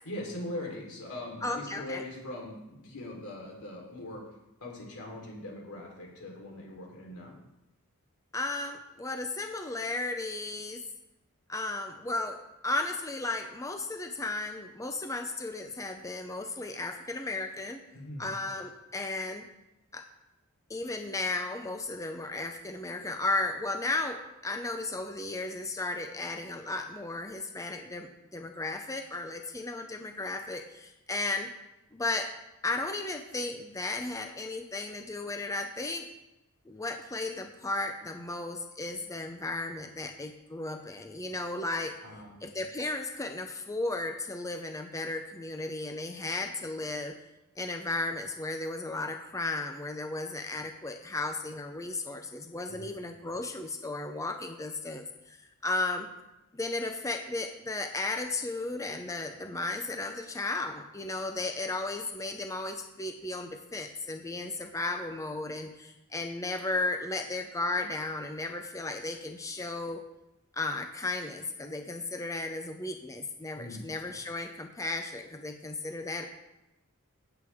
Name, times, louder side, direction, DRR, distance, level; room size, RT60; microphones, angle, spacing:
voice 1, 0.1-4.2 4.6-7.4 17.9-18.3 42.0-42.3 52.7-53.0 73.6-73.8, left 1 dB, 90° left, -1 dB, 3.8 m, -41 dB
voice 2, 1.4-2.0 8.3-10.8 11.5-17.8 18.2-19.5 19.9-20.0 20.7-31.5 31.9-32.3 32.6-36.1 36.7-42.0 42.4-47.1 47.6-56.1 56.5-70.0 70.5-76.3, left 2 dB, 15° left, 5 dB, 0.7 m, -35 dB
16.0 x 8.0 x 3.6 m, 0.92 s
head